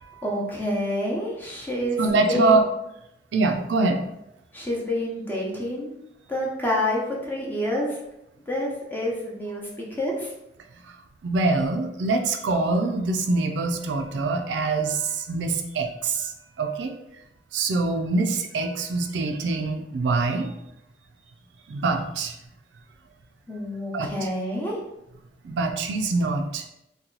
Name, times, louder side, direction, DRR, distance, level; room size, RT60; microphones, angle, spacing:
voice 1, 0.2-2.0 2.3-2.6 4.5-5.9 6.3-8.0 8.5-10.3 23.5-24.8, left 1 dB, 10° left, -4 dB, 0.7 m, -28 dB
voice 2, 2.0-2.6 3.3-4.0 11.2-16.3 16.6-16.9 17.5-20.5 21.7-22.4 23.9-24.1 25.4-26.7, right 3 dB, 75° right, 5 dB, 0.4 m, -24 dB
2.9 x 2.2 x 3.8 m, 0.85 s
head